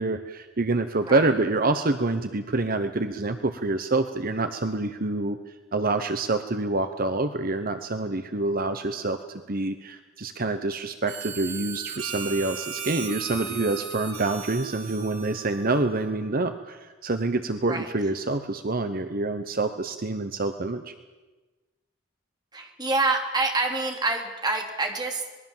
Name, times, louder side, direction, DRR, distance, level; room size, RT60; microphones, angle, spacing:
voice 1, 0.0-9.2 9.5-20.9, right 2 dB, 50° right, 9 dB, 1.0 m, -27 dB
Harmonica, 11.1-16.2, right 6 dB, 85° right, 3.9 m, -37 dB
voice 2, 22.5-25.3, right 3 dB, 20° right, 3 dB, 3.1 m, -27 dB
26.0 x 21.0 x 7.4 m, 1.2 s
head